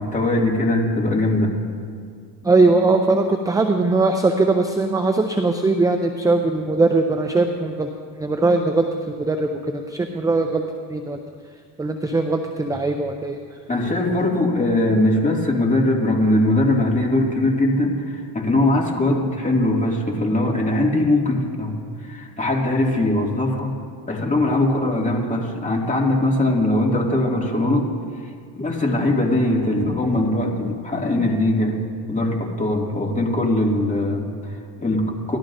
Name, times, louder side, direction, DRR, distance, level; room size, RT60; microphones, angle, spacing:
voice 1, 0.0-1.5 13.7-23.7 24.1-27.9 28.6-31.8 32.1-35.4, left 1 dB, 15° left, -2 dB, 2.3 m, -21 dB
voice 2, 2.4-7.9 8.2-10.6 10.9-11.2 11.8-13.4, right 3 dB, 10° right, 5 dB, 0.4 m, -20 dB
18.5 x 12.5 x 2.6 m, 2.1 s
supercardioid pair, 95°, 49 cm